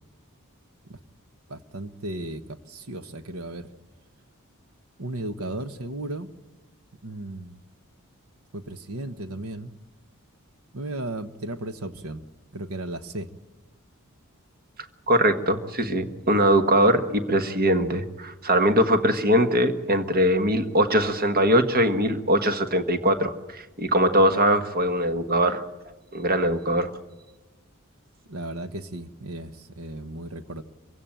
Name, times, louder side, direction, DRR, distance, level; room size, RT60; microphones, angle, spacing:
voice 1, 1.5-3.7 5.0-6.3 7.0-7.6 8.5-9.7 10.7-12.2 12.5-13.3 28.3-30.6, right 1 dB, 70° right, 11 dB, 1.2 m, -35 dB
voice 2, 15.1-25.6 26.1-26.9, right 1 dB, 45° right, 8 dB, 1.4 m, -21 dB
24.0 x 16.5 x 8.9 m, 1.2 s
head